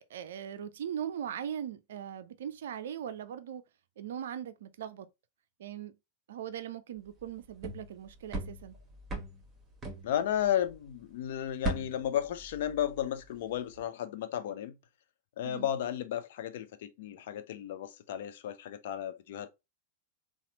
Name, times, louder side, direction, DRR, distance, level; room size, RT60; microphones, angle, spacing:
voice 1, 0.1-3.6 4.0-5.1 5.6-5.9 6.3-8.8 15.4-15.7, right 9 dB, 60° right, 0.4 m, -40 dB
sound 1, 7.2-10.9 11.2-13.3 13.5-13.8, right 2 dB, 20° right, 1.2 m, -40 dB
voice 2, 10.0-14.8 15.4-19.5, left 10 dB, 55° left, 0.5 m, -33 dB
4.1 x 2.4 x 2.8 m
figure-of-eight pair, 90°, 0 cm